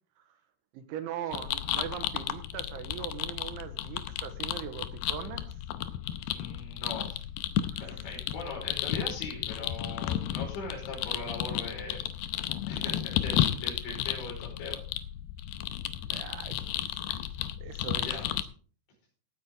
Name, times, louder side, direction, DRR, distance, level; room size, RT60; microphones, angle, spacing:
voice 1, 0.7-5.5 7.7-7.8 16.1-17.3 17.6-18.4, right 9 dB, 80° right, 9 dB, 3.6 m, -40 dB
sound 1, 1.3-18.4, left 12 dB, 85° left, 2.3 m, -33 dB
voice 2, 6.3-7.3 7.8-14.8 18.0-18.2, left 2 dB, 70° left, 0 dB, 7.2 m, -40 dB
18.0 x 8.9 x 3.6 m, 0.41 s
omnidirectional pair, 5.6 m